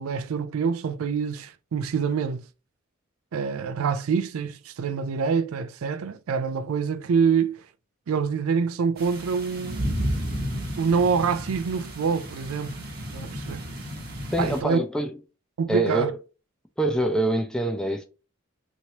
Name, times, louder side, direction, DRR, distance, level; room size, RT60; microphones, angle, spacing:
voice 1, 0.0-2.5 3.3-7.7 8.1-9.9 10.8-12.8 13.1-13.6 14.4-14.8 15.6-16.1, right 6 dB, 75° right, 0.4 m, -26 dB
sound 1, 9.0-14.6, equal, 45° right, 1.0 m, -32 dB
voice 2, 14.3-15.1 15.7-16.1 16.8-18.0, right 1 dB, 5° left, 0.4 m, -25 dB
3.1 x 2.8 x 2.8 m
head